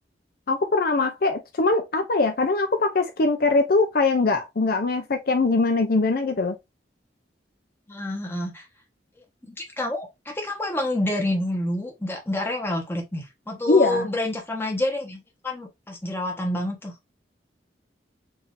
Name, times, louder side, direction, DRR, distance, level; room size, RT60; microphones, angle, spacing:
voice 1, 0.5-6.5 13.7-14.1, left 3 dB, 55° left, 0.6 m, -22 dB
voice 2, 7.9-8.7 9.5-16.9, left 1 dB, 15° left, 1.1 m, -28 dB
4.7 x 2.7 x 3.1 m
head